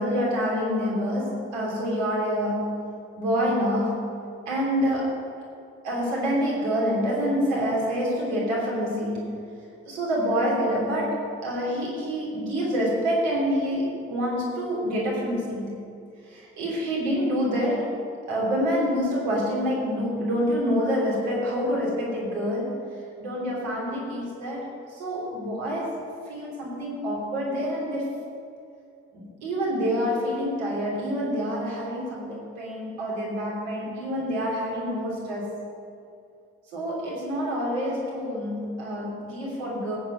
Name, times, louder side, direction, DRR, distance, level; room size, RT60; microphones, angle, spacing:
voice 1, 0.0-2.7 3.2-4.0 4.5-5.3 5.8-9.3 9.8-15.8 16.2-18.0 18.3-22.8 23.2-26.0 26.3-28.2 29.1-35.5 36.7-40.0, equal, 85° right, -4 dB, 2.9 m, -27 dB
15.5 x 8.9 x 5.3 m, 2.5 s
hypercardioid pair, 40°, 33 cm